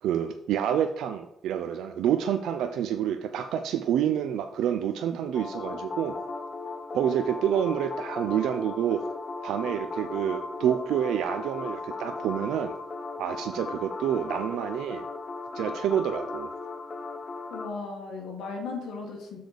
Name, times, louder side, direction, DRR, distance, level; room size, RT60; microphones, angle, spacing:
voice 1, 0.0-6.2 6.9-9.0 9.4-12.7 13.2-15.0 15.5-16.5, right 9 dB, 85° right, 7 dB, 0.4 m, -28 dB
sound 1, 5.3-17.7, left 3 dB, 40° left, 0.7 m, -37 dB
voice 2, 17.5-19.4, left 4 dB, 75° left, 1 dB, 1.7 m, -36 dB
6.7 x 4.0 x 5.1 m, 0.82 s
cardioid pair, 90°, 0 cm